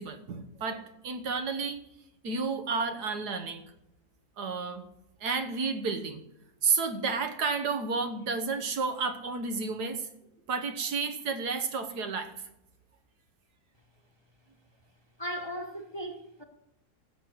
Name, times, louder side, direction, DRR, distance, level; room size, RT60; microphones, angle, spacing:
voice 1, 0.0-1.8 2.2-3.6 4.4-4.8 5.2-6.2 6.6-10.1 10.5-12.3, right 4 dB, 85° right, 1.8 m, -31 dB
voice 2, 15.2-16.4, equal, 20° left, 1.1 m, -37 dB
14.0 x 7.8 x 6.4 m
omnidirectional pair, 1.7 m